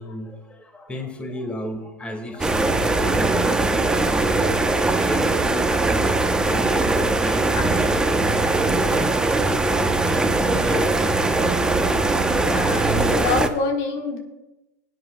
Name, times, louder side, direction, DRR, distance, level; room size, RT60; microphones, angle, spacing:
voice 1, 0.0-4.7 5.0-9.3 10.3-12.0, equal, 10° left, 4 dB, 2.0 m, -34 dB
sound 1, 2.4-13.5, right 2 dB, 10° right, 0.9 m, -20 dB
voice 2, 12.4-14.2, left 4 dB, 50° left, 2 dB, 1.8 m, -26 dB
20.5 x 9.6 x 2.3 m, 0.99 s
hypercardioid pair, 100°, 9 cm